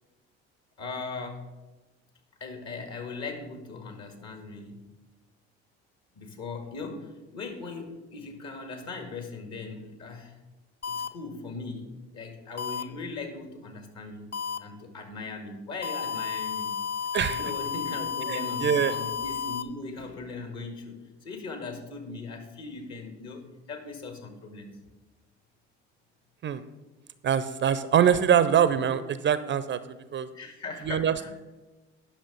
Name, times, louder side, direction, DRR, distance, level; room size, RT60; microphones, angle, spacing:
voice 1, 0.8-1.5 2.4-4.9 6.2-10.4 10.9-14.3 14.6-16.8 17.3-24.8 30.3-31.3, left 3 dB, 50° left, 5 dB, 2.0 m, -39 dB
sound 1, 10.8-11.1 12.6-12.8 14.3-14.6 15.8-19.6, left 7 dB, 30° left, 0.6 m, -32 dB
voice 2, 18.3-18.9 26.4-26.6 27.2-29.8 30.1-30.3 30.9-31.1, right 8 dB, 35° right, 14 dB, 0.5 m, -23 dB
10.0 x 6.2 x 5.3 m, 1.1 s
hypercardioid pair, 60°, 34 cm